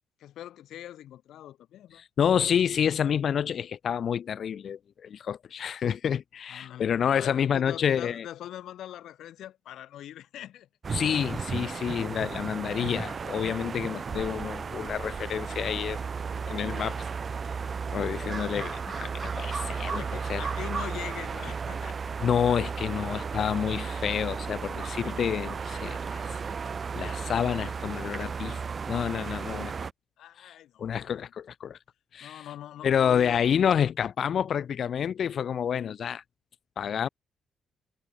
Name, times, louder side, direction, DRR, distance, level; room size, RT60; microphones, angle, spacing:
voice 1, 0.2-2.0 6.5-10.7 18.0-18.8 19.9-22.0 23.0-23.2 30.2-31.3 32.2-33.4, left 12 dB, 75° left, 4.9 m, -43 dB
voice 2, 2.2-8.3 10.9-16.0 16.5-17.0 17.9-20.0 20.3-20.4 22.2-26.3 26.9-28.6 28.9-29.7 30.4-30.5 30.8-31.8 32.1-32.5 32.8-36.2 36.8-37.1, left 8 dB, 55° left, 3.4 m, -28 dB
sound 1, 10.8-29.9, right 5 dB, 40° right, 3.6 m, -34 dB
cardioid pair, 90°, 0 cm